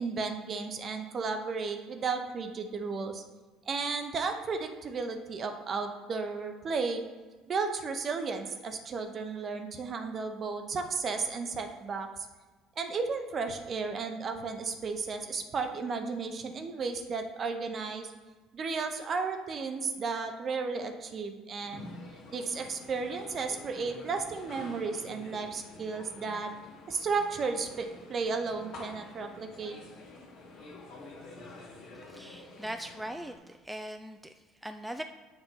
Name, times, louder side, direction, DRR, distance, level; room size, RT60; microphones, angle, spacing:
voice 1, 0.0-3.2 3.7-7.0 7.5-12.3 12.8-18.1 18.5-21.9 22.3-26.5 26.9-29.8, right 4 dB, 40° right, 6 dB, 0.8 m, -34 dB
sound 1, 21.6-33.4, left 2 dB, 60° left, 1.6 m, -48 dB
voice 2, 31.9-35.0, right 1 dB, 5° right, 6 dB, 0.3 m, -41 dB
7.3 x 2.5 x 5.7 m, 1.3 s
hypercardioid pair, 65°, 0 cm